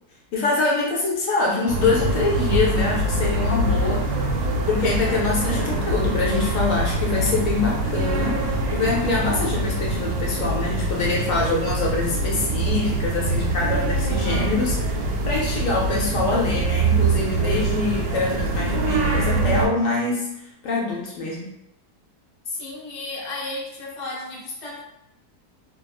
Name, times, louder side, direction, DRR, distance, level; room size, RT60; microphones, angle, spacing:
voice 1, 0.3-4.3 4.7-20.3 20.6-21.5, left 3 dB, 65° left, -3 dB, 0.9 m, -24 dB
sound 1, 1.7-19.7, right 2 dB, 85° right, 1.1 m, -24 dB
voice 2, 22.4-24.8, left 2 dB, 50° left, -4 dB, 0.5 m, -33 dB
3.0 x 2.2 x 2.2 m, 0.84 s
omnidirectional pair, 1.7 m